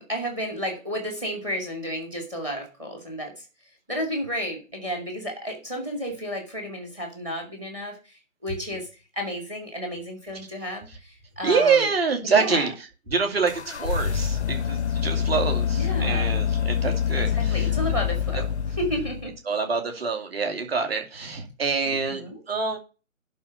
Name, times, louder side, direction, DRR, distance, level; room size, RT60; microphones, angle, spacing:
voice 1, 0.0-3.5 3.9-11.9 12.2-12.7 15.7-16.3 17.3-18.5 18.8-19.3 21.8-22.4, equal, 10° right, 3 dB, 1.2 m, -32 dB
voice 2, 11.4-17.7 19.5-22.8, right 5 dB, 45° right, 4 dB, 2.7 m, -26 dB
sound 1, 13.5-19.4, left 8 dB, 50° left, 0.6 m, -26 dB
11.0 x 4.3 x 6.9 m, 0.32 s
figure-of-eight pair, 155°, 42 cm